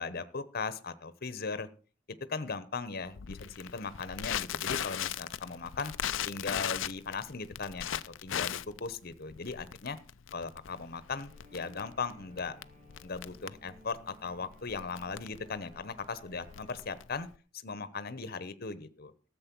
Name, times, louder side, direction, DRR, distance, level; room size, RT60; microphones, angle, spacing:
voice 1, 0.0-1.7 2.3-5.9 6.2-10.0 10.3-12.6 13.0-17.3 17.6-19.1, left 4 dB, 55° left, 14 dB, 1.0 m, -38 dB
Crackle, 3.2-17.4, left 10 dB, 85° left, 0.5 m, -38 dB
sound 1, 11.1-16.9, left 2 dB, 40° right, 2.7 m, -58 dB
14.0 x 7.7 x 6.1 m, 0.38 s
head